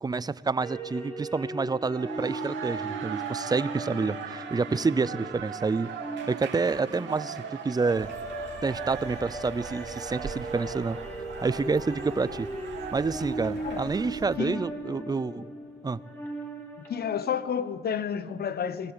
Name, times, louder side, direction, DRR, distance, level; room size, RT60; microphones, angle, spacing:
voice 1, 0.0-5.9 6.3-8.1 8.6-11.0 11.4-12.5 12.9-15.4 15.8-16.0, right 4 dB, 20° right, 0.6 m, -28 dB
sound 1, 0.6-17.6, right 1 dB, 10° left, 3.6 m, -38 dB
sound 2, 1.7-14.1, right 7 dB, 65° right, 2.4 m, -40 dB
sound 3, 7.9-14.4, right 4 dB, 35° right, 3.4 m, -46 dB
voice 2, 13.6-14.0 14.4-14.6 16.8-18.9, left 7 dB, 50° left, 1.0 m, -31 dB
20.0 x 19.5 x 8.1 m
cardioid pair, 90°, 20 cm